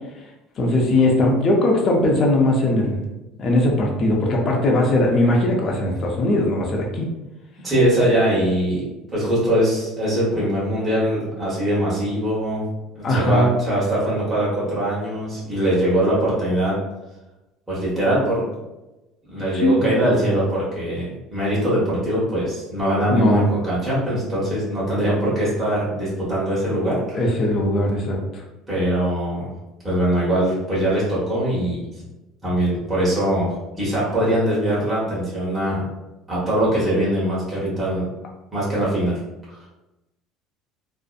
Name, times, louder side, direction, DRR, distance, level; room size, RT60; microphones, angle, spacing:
voice 1, 0.6-3.0 3.4-7.1 13.0-13.5 19.5-20.3 23.1-23.4 27.1-28.4, left 1 dB, 40° left, -1 dB, 0.5 m, -19 dB
voice 2, 7.6-8.8 9.1-12.6 12.9-16.8 17.7-18.4 19.3-27.2 28.7-29.5 29.8-31.8 32.4-35.8 36.3-38.1 38.5-39.2 39.5-39.6, right 1 dB, 10° right, -9 dB, 1.0 m, -22 dB
2.6 x 2.0 x 2.4 m, 1.0 s
cardioid pair, 120°, 0 cm